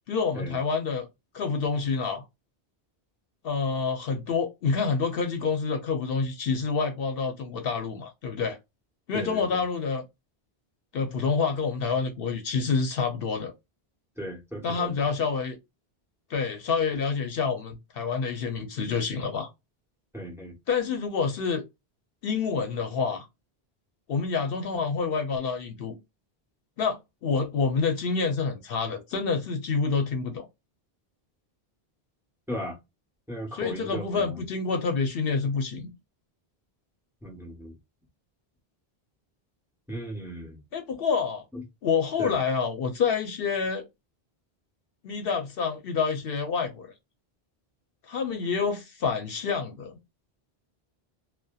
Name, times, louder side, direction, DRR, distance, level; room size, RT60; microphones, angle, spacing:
voice 1, 0.1-1.1 1.3-2.2 3.4-8.6 9.1-10.0 10.9-13.5 14.6-15.6 16.3-19.5 20.7-21.6 22.2-23.3 24.1-25.9 26.8-30.4 33.5-35.9 40.7-41.4 41.8-43.8 45.0-46.9 48.1-50.0, left 5 dB, 65° left, 0.7 m, -27 dB
voice 2, 9.1-9.6 14.2-14.9 20.1-20.6 32.5-32.8 33.3-34.4 37.2-37.8 39.9-40.6 41.5-41.6 42.2-42.4, equal, 5° right, 0.8 m, -36 dB
2.7 x 2.2 x 2.2 m
omnidirectional pair, 1.1 m